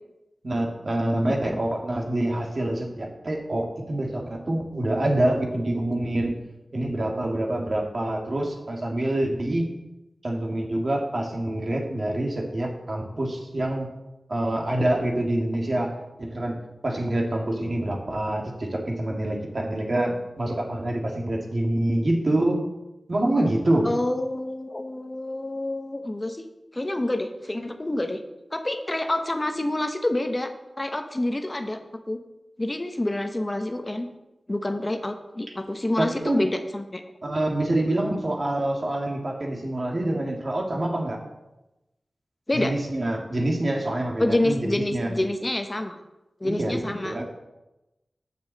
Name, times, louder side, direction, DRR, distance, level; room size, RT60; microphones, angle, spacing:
voice 1, 0.4-6.3 6.7-9.6 10.2-13.9 14.3-15.9 16.2-16.5 16.8-22.6 23.1-23.9 36.0-36.5 37.2-41.2 42.5-45.2 46.4-47.2, right 1 dB, 55° right, 0 dB, 1.9 m, -26 dB
voice 2, 23.8-26.4 26.7-28.2 28.5-30.5 30.8-31.8 32.1-32.2 32.6-34.1 34.5-37.0 42.5-42.8 44.2-46.0 46.4-47.2, left 1 dB, 30° left, 6 dB, 0.9 m, -27 dB
7.1 x 6.2 x 7.5 m, 0.98 s
wide cardioid pair, 60°, 0 cm